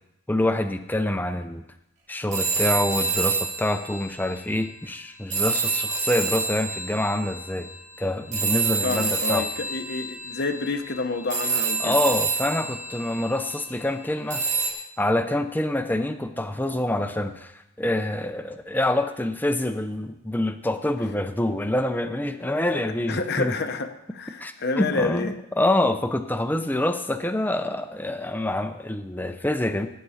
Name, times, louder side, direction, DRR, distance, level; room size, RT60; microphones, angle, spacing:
voice 1, 0.3-1.6 2.1-7.7 8.0-9.5 11.8-14.4 15.0-23.5 24.4-29.9, left 1 dB, 10° left, 8 dB, 0.6 m, -26 dB
sound 1, 2.3-4.8 5.3-13.8 14.3-14.7, right 4 dB, 35° right, 3.0 m, -28 dB
voice 2, 8.8-12.0 23.1-25.4, left 3 dB, 50° left, 7 dB, 0.8 m, -28 dB
16.5 x 9.3 x 4.3 m, 0.87 s
head